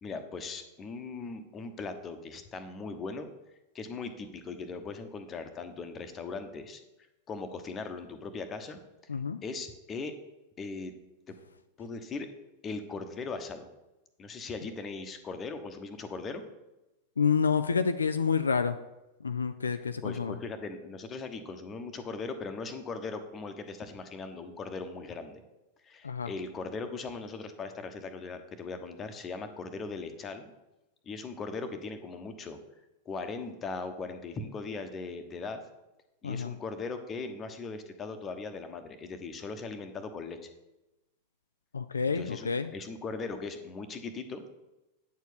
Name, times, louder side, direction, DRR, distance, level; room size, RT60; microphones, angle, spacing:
voice 1, 0.0-3.3 3.7-6.8 7.3-8.8 9.4-10.1 10.6-10.9 11.3-11.4 11.8-12.3 12.6-13.7 14.2-16.4 20.0-25.4 25.8-30.5 31.1-32.6 33.0-35.6 36.2-40.4 42.1-44.4, left 4 dB, 25° left, 8 dB, 1.1 m, -39 dB
voice 2, 17.2-18.8 19.2-20.4 26.0-26.3 36.2-36.5 41.7-42.7, left 6 dB, 75° left, 10 dB, 0.4 m, -28 dB
9.1 x 4.6 x 6.9 m, 0.97 s
figure-of-eight pair, 90°, 0 cm